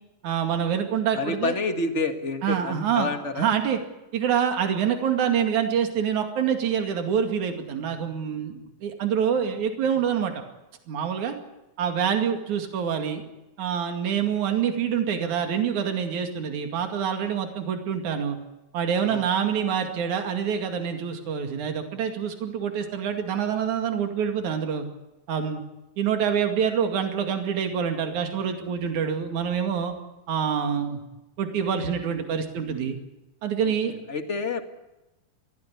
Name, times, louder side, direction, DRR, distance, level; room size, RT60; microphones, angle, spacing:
voice 1, 0.2-1.6 2.4-3.1 3.4-3.8 4.1-10.3 10.9-11.4 11.8-13.2 13.6-18.4 18.7-24.9 25.3-25.6 26.0-29.9 30.3-31.0 31.4-33.0 33.4-33.9, right 8 dB, 65° right, 5 dB, 3.7 m, -26 dB
voice 2, 1.1-3.5 19.1-19.3 33.8-34.6, left 3 dB, 30° left, 7 dB, 1.4 m, -29 dB
22.5 x 16.5 x 9.9 m, 1.0 s
omnidirectional pair, 3.7 m